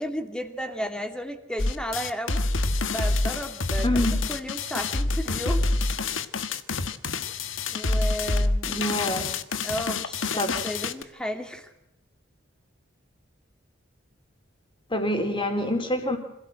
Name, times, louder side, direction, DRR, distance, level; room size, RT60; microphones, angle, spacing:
voice 1, 0.0-2.4 2.8-5.7 7.7-8.9 9.6-11.7, equal, 5° left, 6 dB, 2.6 m, -33 dB
sound 1, 1.6-11.0, left 2 dB, 90° left, 1.4 m, -27 dB
voice 2, 3.8-4.2 8.7-9.3 10.4-10.5 14.9-16.2, left 1 dB, 25° left, 5 dB, 4.2 m, -26 dB
27.0 x 16.5 x 7.7 m, 0.82 s
head